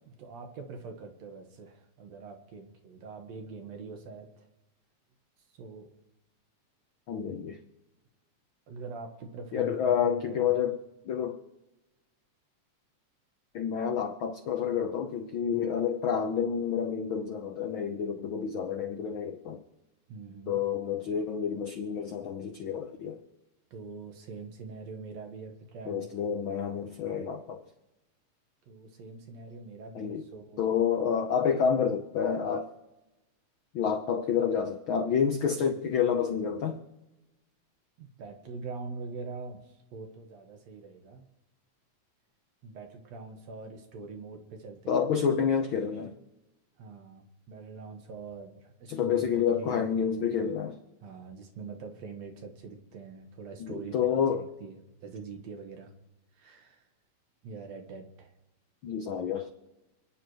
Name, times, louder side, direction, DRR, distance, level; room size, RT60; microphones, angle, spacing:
voice 1, 0.1-4.5 5.6-5.9 8.7-10.6 20.1-20.6 23.7-26.3 28.7-30.7 38.0-41.2 42.6-45.4 46.8-50.3 51.0-55.9 56.3-56.9 57.4-58.3, right 4 dB, 65° right, 2.5 m, -44 dB
voice 2, 7.1-7.6 9.5-10.8 11.1-11.4 13.5-19.6 20.5-23.2 25.9-27.6 29.9-30.2 30.6-32.7 33.7-36.8 44.9-46.1 48.9-50.8 53.6-54.5 58.8-59.5, left 7 dB, 75° left, 1.1 m, -29 dB
29.0 x 10.0 x 3.1 m
omnidirectional pair, 3.4 m